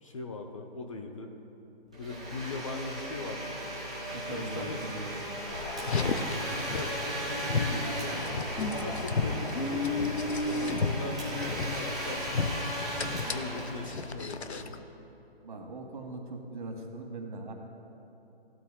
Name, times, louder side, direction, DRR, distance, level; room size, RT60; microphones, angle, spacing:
voice 1, 0.0-1.3 1.9-3.6 4.3-4.9 5.8-8.3 8.7-10.0 10.4-12.6 13.1-14.7, left 3 dB, 30° left, 4 dB, 0.7 m, -39 dB
Domestic sounds home sounds, 1.9-14.5, right 1 dB, 5° right, 0.4 m, -37 dB
voice 2, 4.1-5.5 15.4-17.5, right 2 dB, 50° right, 3 dB, 1.8 m, -40 dB
sound 1, 5.5-13.5, left 1 dB, 10° left, 1.3 m, -43 dB
Car, 5.8-14.8, left 3 dB, 90° left, 0.8 m, -33 dB
17.5 x 12.5 x 2.3 m, 3.0 s
figure-of-eight pair, 150°, 32 cm